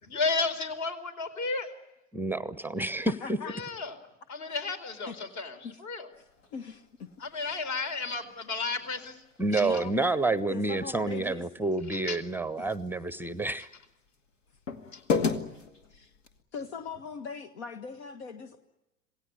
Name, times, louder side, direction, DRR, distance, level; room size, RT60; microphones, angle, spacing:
voice 1, 0.0-1.7 3.4-3.9 4.3-6.1 7.2-9.2 9.5-9.8 11.9-12.2, left 4 dB, 45° left, 8 dB, 4.5 m, -33 dB
voice 2, 2.1-3.1 9.4-13.7, right 2 dB, 5° right, 15 dB, 0.8 m, -29 dB
voice 3, 3.2-3.5 4.5-4.6 5.1-5.2 5.6-5.8 6.5-7.1 7.3-7.6 9.5-9.9 10.5-11.5 12.6-12.7 15.9-16.1 16.5-18.6, left 5 dB, 60° left, 8 dB, 1.6 m, -40 dB
sound 1, 6.1-16.4, left 5 dB, 75° left, 2.3 m, -38 dB
27.5 x 18.0 x 9.9 m, 0.98 s
figure-of-eight pair, 90°, 37 cm